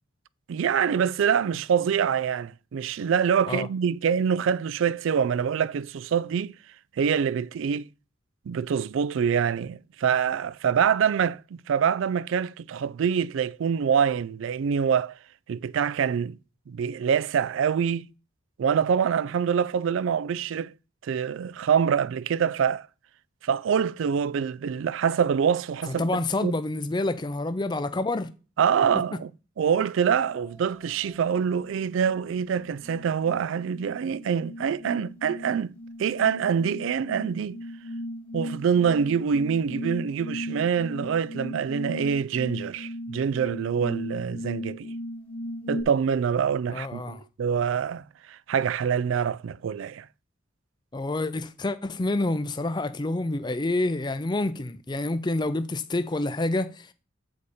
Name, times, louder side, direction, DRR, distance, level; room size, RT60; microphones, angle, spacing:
voice 1, 0.5-6.6 7.0-7.9 8.5-15.2 15.5-16.4 16.7-18.1 18.6-20.7 21.0-22.9 23.4-26.0 26.4-26.5 28.6-29.3 29.6-35.7 36.0-37.6 38.3-44.9 45.7-50.1, right 7 dB, 75° right, 0.3 m, -25 dB
voice 2, 25.9-28.3 46.7-47.2 50.9-56.9, left 2 dB, 20° left, 0.5 m, -28 dB
sound 1, 30.3-30.6 31.0-45.8, equal, 5° left, 1.1 m, -38 dB
8.2 x 4.2 x 4.8 m
head